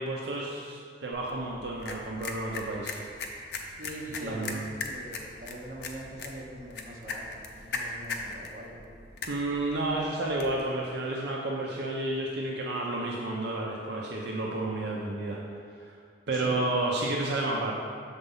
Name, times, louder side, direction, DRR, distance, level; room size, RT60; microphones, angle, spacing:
voice 1, 0.0-2.9 4.2-4.6 9.2-15.4 15.8-16.0 16.3-17.7, right 2 dB, 70° right, -3 dB, 0.6 m, -31 dB
sound 1, 1.1-10.6, left 3 dB, 70° left, 0.6 m, -40 dB
voice 2, 3.8-8.8 16.3-16.6, right 1 dB, 45° right, -3 dB, 1.1 m, -42 dB
6.7 x 4.0 x 5.4 m, 2.1 s
head